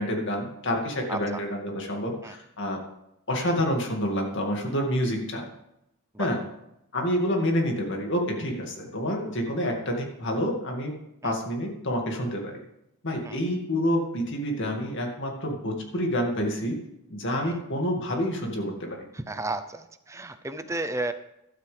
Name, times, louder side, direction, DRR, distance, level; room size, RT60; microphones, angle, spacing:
voice 1, 0.0-2.8 3.3-5.4 6.2-6.4 6.9-10.9 11.2-12.6 13.0-16.7 17.1-19.0, equal, 55° left, 2 dB, 2.2 m, -28 dB
voice 2, 1.1-1.4 2.2-2.3 6.1-6.3 11.2-11.3 13.2-13.4 17.4-17.6 19.1-21.1, right 2 dB, 15° right, 10 dB, 0.6 m, -33 dB
13.0 x 12.5 x 3.5 m, 0.83 s
head